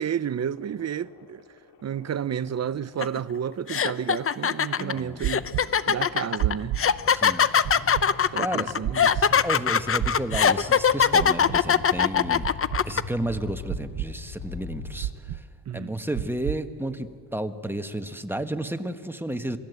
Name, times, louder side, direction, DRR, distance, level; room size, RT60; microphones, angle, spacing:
voice 1, 0.0-1.4 1.8-5.5 5.9-6.8 8.3-9.4 15.7-16.0, right 8 dB, 40° right, 0.6 m, -31 dB
sound 1, 0.5-15.6, left 5 dB, 70° left, 2.8 m, -43 dB
sound 2, 3.0-3.2 3.7-13.0, left 7 dB, 30° left, 0.7 m, -21 dB
voice 2, 4.7-5.3 7.1-7.5 8.4-8.8 9.4-12.6 12.8-15.4 15.7-19.6, right 1 dB, 5° right, 1.3 m, -32 dB
sound 3, 5.2-5.6 6.4-6.8 7.6-8.0 8.8-9.2 10.0-10.4 11.2-11.6 12.4-12.8 13.7-14.1 15.0-15.4 16.2-16.6, right 14 dB, 80° right, 0.8 m, -28 dB
27.5 x 20.0 x 8.1 m
cardioid pair, 115°, 44 cm